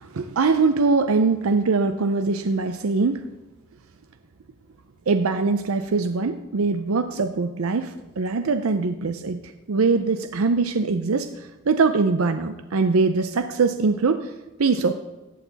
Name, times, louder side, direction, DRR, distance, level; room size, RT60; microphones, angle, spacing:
voice 1, 0.0-3.3 5.1-14.3 14.6-14.9, right 4 dB, 90° right, 9 dB, 0.6 m, -22 dB
14.5 x 8.4 x 4.0 m, 1.1 s
head